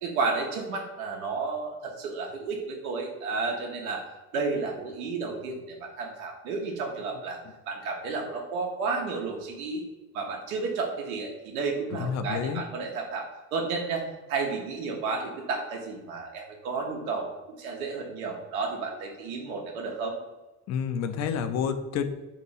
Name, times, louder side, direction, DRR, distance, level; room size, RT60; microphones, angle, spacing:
voice 1, 0.0-4.0 4.3-7.4 7.7-9.8 10.1-14.0 14.3-17.3 17.6-20.2, right 4 dB, 70° right, 0 dB, 0.7 m, -32 dB
voice 2, 11.9-12.6 20.7-22.0, left 7 dB, 40° left, 9 dB, 0.4 m, -29 dB
2.7 x 2.6 x 4.1 m, 1.1 s
figure-of-eight pair, 60°, 43 cm